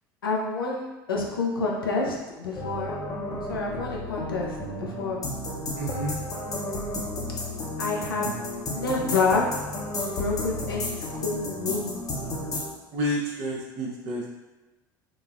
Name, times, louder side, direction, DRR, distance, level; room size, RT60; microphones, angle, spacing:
voice 1, 0.2-2.9 3.5-5.2 7.8-9.5 10.1-12.1, left 4 dB, 85° left, -2 dB, 0.6 m, -28 dB
sound 1, 2.6-12.7, left 1 dB, 35° left, 0.7 m, -32 dB
voice 2, 5.8-6.2 12.9-14.3, equal, 55° right, -3 dB, 0.8 m, -30 dB
3.9 x 2.1 x 2.4 m, 1.1 s
hypercardioid pair, 70°, 11 cm